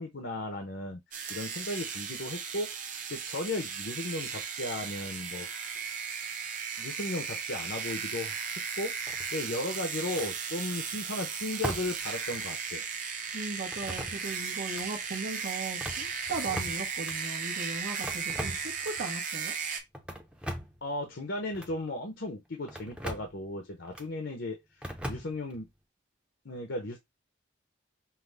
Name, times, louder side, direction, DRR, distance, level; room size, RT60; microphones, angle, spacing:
voice 1, 0.0-2.8 3.1-5.5 6.8-8.5 8.8-8.9 9.3-12.8 20.8-25.7 26.4-27.0, left 1 dB, 70° left, 0.9 m, -36 dB
sound 1, 1.1-19.8, right 6 dB, 40° right, 0.9 m, -36 dB
sound 2, 9.1-9.6 10.1-10.3 11.6-12.1 12.3-12.4 13.7-14.4 14.7-14.9 15.6-17.2 18.0-19.1 19.9-20.8 21.5-21.8 22.7-23.3 23.9-24.1 24.8-25.6, equal, 5° right, 0.6 m, -39 dB
voice 2, 13.3-19.5, right 3 dB, 75° right, 1.2 m, -37 dB
5.8 x 2.2 x 3.4 m
head